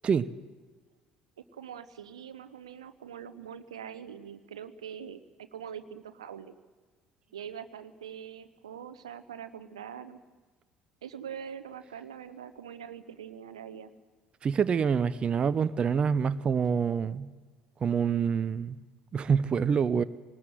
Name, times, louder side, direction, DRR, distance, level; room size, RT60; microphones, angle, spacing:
voice 1, 1.5-5.2 5.5-6.5 7.3-10.2 11.0-13.9, right 8 dB, 75° right, 12 dB, 0.9 m, -43 dB
voice 2, 14.4-17.3 17.8-18.8 19.1-20.0, right 6 dB, 35° right, 14 dB, 0.7 m, -26 dB
22.0 x 19.5 x 7.8 m, 1.4 s
figure-of-eight pair, 55°, 3 cm